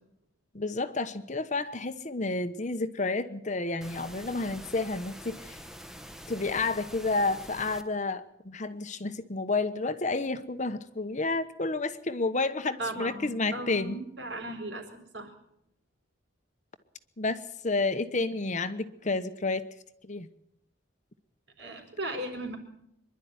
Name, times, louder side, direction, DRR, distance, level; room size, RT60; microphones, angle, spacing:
voice 1, 0.5-5.6 6.3-14.0 17.2-19.6 20.0-20.3, left 3 dB, 40° left, 11 dB, 1.0 m, -30 dB
sound 1, 3.8-7.8, equal, ahead, 1.2 m, -45 dB
voice 2, 12.8-14.9 15.1-15.3 21.6-22.6, right 1 dB, 60° right, 5 dB, 4.4 m, -36 dB
24.5 x 11.5 x 9.6 m, 0.80 s
head